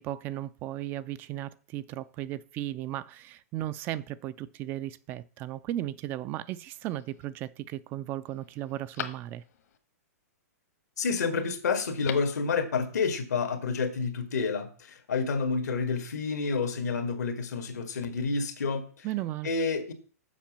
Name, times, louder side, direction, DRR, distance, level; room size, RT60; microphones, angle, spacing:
voice 1, 0.0-9.4 19.0-19.5, right 14 dB, 25° right, 0.3 m, -36 dB
Telephone, 6.7-7.2 7.8-7.9 8.3-9.8 11.8-12.4 12.7-12.8, left 8 dB, 70° left, 1.4 m, -42 dB
voice 2, 11.0-19.1 19.4-19.9, left 4 dB, 85° left, 1.7 m, -29 dB
7.4 x 5.0 x 7.2 m
hypercardioid pair, 150°, 9 cm